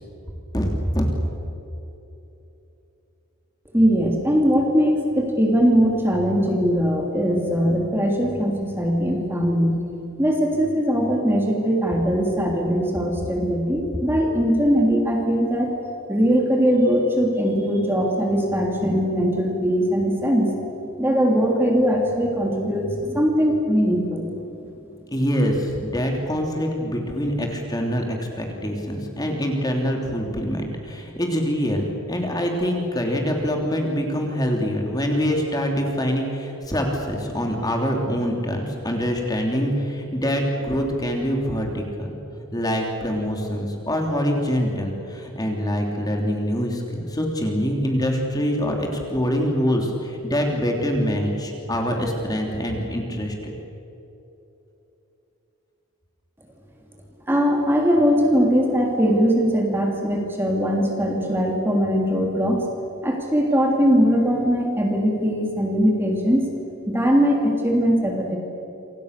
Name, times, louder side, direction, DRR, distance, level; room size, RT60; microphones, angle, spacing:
voice 1, 0.5-1.1 25.1-42.1 42.5-53.5, equal, 15° left, 1 dB, 3.2 m, -24 dB
voice 2, 3.7-9.8 10.2-15.7 16.1-20.5 21.0-24.3 57.3-62.6 63.0-66.4 66.9-68.4, equal, 10° right, 0 dB, 3.1 m, -20 dB
28.5 x 26.0 x 6.8 m, 3.0 s
head